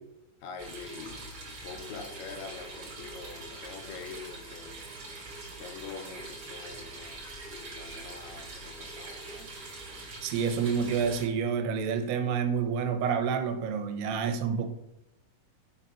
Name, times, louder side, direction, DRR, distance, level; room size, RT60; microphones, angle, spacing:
voice 1, 0.4-5.3 5.6-9.5, left 5 dB, 80° left, 5 dB, 2.7 m, -45 dB
sound 1, 0.6-11.3, right 2 dB, 40° right, 2.4 m, -43 dB
voice 2, 10.2-14.7, right 6 dB, 90° right, 7 dB, 2.8 m, -28 dB
6.7 x 4.1 x 5.7 m, 0.89 s
omnidirectional pair, 4.6 m